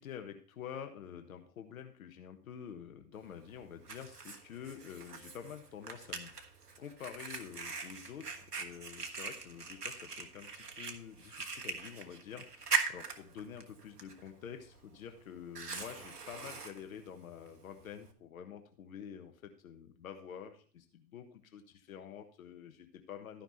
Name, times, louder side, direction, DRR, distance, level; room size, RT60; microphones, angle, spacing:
voice 1, 0.0-6.3 6.8-23.4, left 8 dB, 60° left, 6 dB, 1.4 m, -48 dB
Fire, 3.2-18.1, right 4 dB, 85° right, 1.5 m, -42 dB
13.0 x 5.9 x 4.2 m, 0.43 s
figure-of-eight pair, 115°, 46 cm